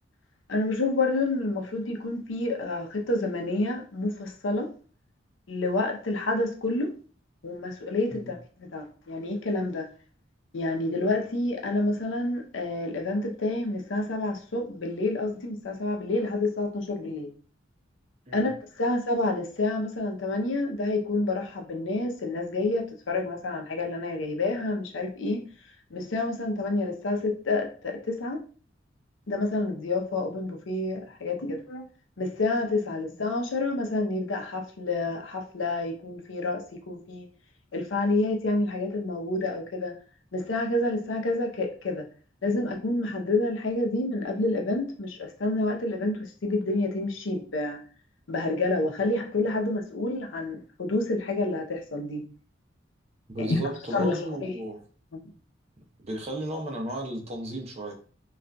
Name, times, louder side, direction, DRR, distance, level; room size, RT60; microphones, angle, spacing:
voice 1, 0.5-4.7 5.5-6.9 7.4-9.9 10.5-17.3 18.3-25.4 25.9-28.4 29.3-31.9 32.2-37.3 37.7-39.9 40.3-42.1 42.4-47.8 48.3-52.2 53.4-53.6 53.9-54.5, left 2 dB, 80° left, 3 dB, 0.6 m, -28 dB
voice 2, 53.3-54.8 56.0-57.9, right 1 dB, 35° right, 2 dB, 0.7 m, -34 dB
3.8 x 2.4 x 2.2 m, 0.40 s
head